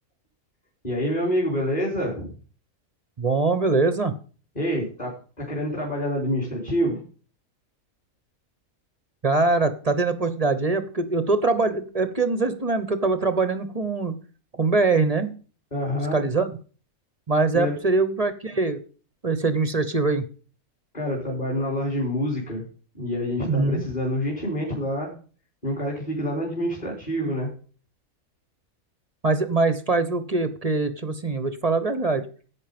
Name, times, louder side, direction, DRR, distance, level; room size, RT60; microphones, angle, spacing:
voice 1, 0.8-2.3 4.6-5.1 5.4-7.0 15.7-16.2 17.5-17.7 20.9-22.6 22.9-25.1 25.6-27.5, equal, 30° left, -3 dB, 3.6 m, -27 dB
voice 2, 3.2-4.1 9.2-14.2 14.6-15.3 16.1-16.6 17.3-18.8 19.2-20.2 23.5-23.8 29.2-32.2, right 3 dB, 30° right, 11 dB, 0.9 m, -23 dB
10.5 x 8.4 x 5.2 m, 0.39 s
omnidirectional pair, 1.5 m